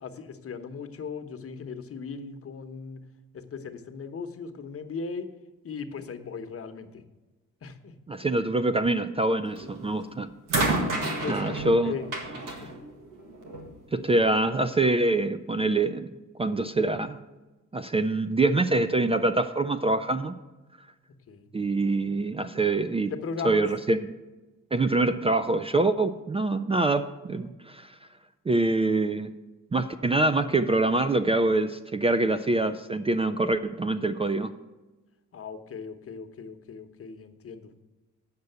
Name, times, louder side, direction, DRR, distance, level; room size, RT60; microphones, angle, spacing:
voice 1, 0.0-3.0 3.3-5.3 5.6-7.0 7.6-7.9 10.9-12.1 12.3-12.7 21.3-21.5 23.1-23.6 35.3-37.7, left 5 dB, 45° left, 7 dB, 1.0 m, -38 dB
voice 2, 8.1-10.3 11.3-11.9 13.9-16.1 16.4-17.2 17.7-20.3 21.5-23.1 23.4-24.1 24.7-28.0 28.5-29.3 29.7-34.5, right 2 dB, 20° right, 10 dB, 0.4 m, -25 dB
sound 1, 9.6-9.9 10.5-13.8 14.8-14.9, right 2 dB, 85° right, 1.7 m, -30 dB
8.2 x 6.6 x 7.9 m, 1.2 s
cardioid pair, 105°, 31 cm